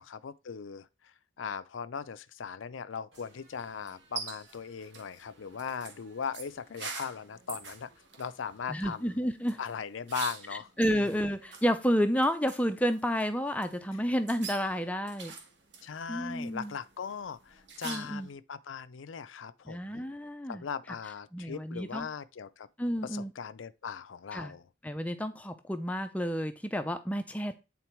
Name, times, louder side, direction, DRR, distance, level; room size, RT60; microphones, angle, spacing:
voice 1, 0.0-7.9 8.2-9.2 9.6-10.7 10.9-11.1 15.8-20.1 20.5-22.7 23.0-24.7, left 6 dB, 80° left, 0.5 m, -39 dB
sound 1, 3.1-18.3, right 5 dB, 65° right, 1.5 m, -46 dB
voice 2, 8.7-9.6 10.8-15.3 16.1-16.7 17.8-18.3 19.7-20.6 21.3-22.1 22.8-23.3 24.3-24.5 24.8-27.6, equal, 5° left, 0.5 m, -30 dB
8.5 x 3.9 x 4.5 m
head